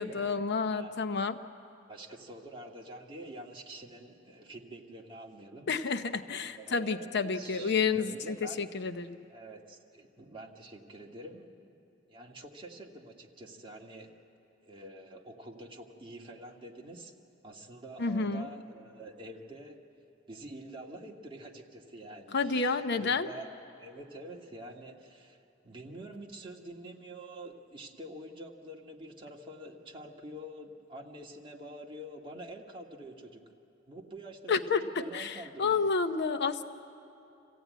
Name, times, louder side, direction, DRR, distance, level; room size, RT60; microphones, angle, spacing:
voice 1, 0.0-1.4 5.7-9.2 18.0-18.5 22.3-23.3 34.5-36.6, left 4 dB, 60° left, 10 dB, 0.7 m, -30 dB
voice 2, 1.9-6.0 6.5-8.7 9.3-11.7 12.1-14.1 14.6-17.1 17.4-19.8 20.3-23.5 23.8-33.4 33.9-35.8, right 1 dB, 25° right, 0 dB, 1.8 m, -47 dB
26.5 x 15.5 x 9.3 m, 2.8 s
head